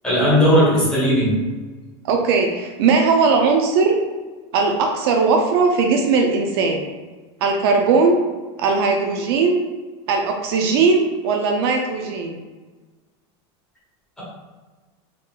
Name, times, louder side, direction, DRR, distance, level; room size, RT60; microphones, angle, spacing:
voice 1, 0.0-1.3, equal, 5° left, -9 dB, 1.3 m, -16 dB
voice 2, 2.0-4.0 4.5-6.8 7.4-8.2 8.6-9.6 10.1-12.4, right 4 dB, 65° right, 3 dB, 0.5 m, -18 dB
3.7 x 3.5 x 2.3 m, 1.3 s
supercardioid pair, 170°, 14 cm